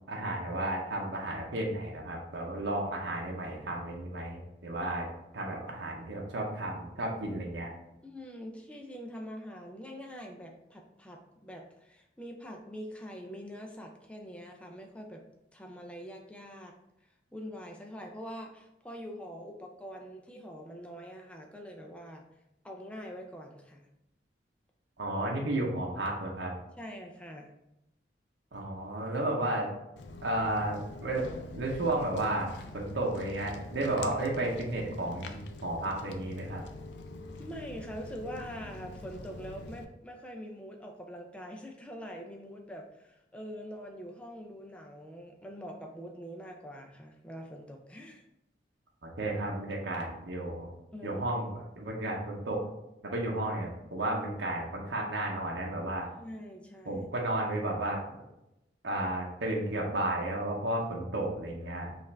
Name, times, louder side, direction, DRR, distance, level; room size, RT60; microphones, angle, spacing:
voice 1, 0.1-5.1 5.3-7.7 25.0-26.5 28.5-29.7 30.2-36.6 49.0-50.7 51.0-52.7 53.0-56.1 56.9-58.0 58.8-61.9, right 1 dB, 75° right, -2 dB, 0.8 m, -33 dB
voice 2, 8.0-15.2 15.5-16.8 17.3-22.2 22.6-23.9 26.8-27.5 37.4-48.3 50.9-51.2 56.2-57.1, equal, 5° left, 2 dB, 0.4 m, -44 dB
Walk footsteps, 30.0-39.8, left 2 dB, 70° left, 0.4 m, -45 dB
5.4 x 2.5 x 3.3 m, 0.88 s
head